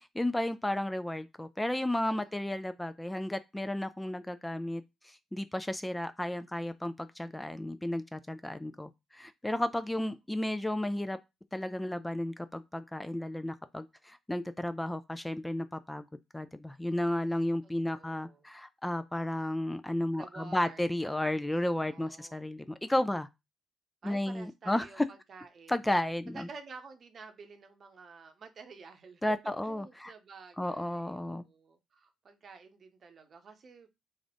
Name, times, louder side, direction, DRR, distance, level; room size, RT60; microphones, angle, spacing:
voice 1, 0.0-11.2 11.5-16.1 16.3-23.3 24.0-25.1 25.7-26.5 29.2-30.1 30.6-31.4, left 1 dB, 10° left, 0.3 m, -33 dB
voice 2, 2.0-2.3 10.0-10.1 17.8-18.4 20.1-20.9 21.9-22.4 24.0-25.7 26.3-29.2 29.6-33.9, right 4 dB, 50° right, 0.7 m, -51 dB
3.2 x 2.5 x 3.7 m
hypercardioid pair, 50°, 0 cm